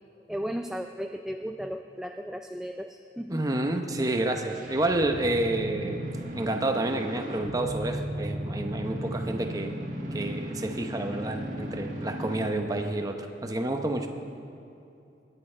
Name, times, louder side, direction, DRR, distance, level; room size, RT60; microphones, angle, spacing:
voice 1, 0.3-3.5, equal, 5° right, 5 dB, 0.3 m, -35 dB
voice 2, 3.3-6.1 6.3-9.8 10.1-14.1, right 2 dB, 20° right, 4 dB, 0.8 m, -29 dB
sound 1, 4.1-12.7, equal, 45° right, 1.6 m, -36 dB
21.0 x 8.8 x 4.4 m, 2.7 s
head